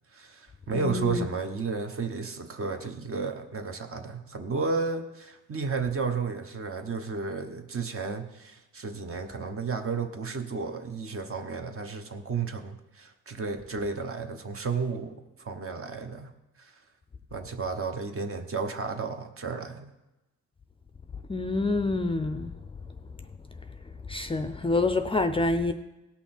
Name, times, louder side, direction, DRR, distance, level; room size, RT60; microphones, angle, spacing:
voice 1, 0.1-16.3 16.6-16.7 17.3-19.9, right 4 dB, 45° right, 6 dB, 1.1 m, -33 dB
voice 2, 0.7-1.3 21.3-22.5 24.1-25.7, left 2 dB, 20° left, 8 dB, 0.5 m, -27 dB
17.5 x 5.8 x 4.4 m, 0.99 s
cardioid pair, 125°, 30 cm